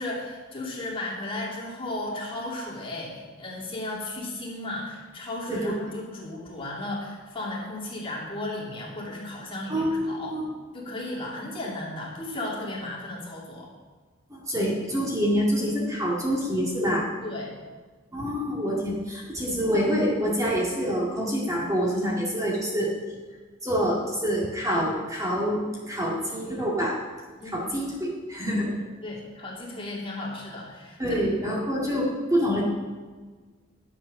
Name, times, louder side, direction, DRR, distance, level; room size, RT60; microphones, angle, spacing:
voice 1, 0.0-10.3 10.7-13.7 17.2-17.5 27.4-27.7 28.7-31.0, left 2 dB, 30° left, -4 dB, 2.6 m, -35 dB
voice 2, 9.7-10.4 14.5-17.1 18.1-22.9 23.6-26.9 27.5-28.7 31.0-32.6, equal, 15° right, -4 dB, 2.2 m, -26 dB
11.0 x 7.6 x 6.4 m, 1.4 s
head